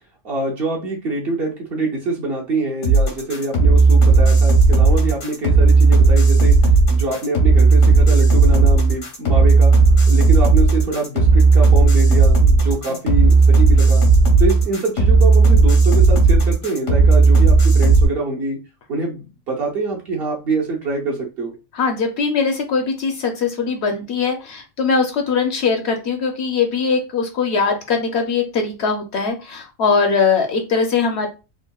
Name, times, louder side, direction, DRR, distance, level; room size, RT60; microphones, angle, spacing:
voice 1, 0.2-6.5 6.9-9.7 10.1-14.0 14.4-18.6 18.9-21.5, right 2 dB, 55° right, -1 dB, 0.8 m, -25 dB
sound 1, 2.8-18.1, right 3 dB, 85° left, 1.4 m, -13 dB
voice 2, 21.7-31.3, left 5 dB, 65° left, 4 dB, 0.7 m, -21 dB
3.5 x 2.1 x 2.2 m, 0.30 s
omnidirectional pair, 1.4 m